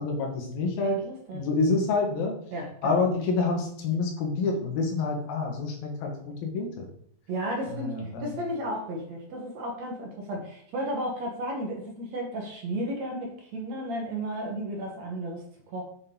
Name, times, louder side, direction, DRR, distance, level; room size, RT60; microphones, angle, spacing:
voice 1, 0.0-1.0 1.3-2.3 2.8-6.9 7.7-8.4, left 3 dB, 80° left, 1 dB, 3.6 m, -27 dB
voice 2, 0.8-1.4 2.5-3.0 7.3-7.9 8.2-15.8, right 1 dB, 55° right, 0 dB, 2.4 m, -33 dB
8.7 x 6.6 x 3.8 m, 0.65 s
omnidirectional pair, 4.2 m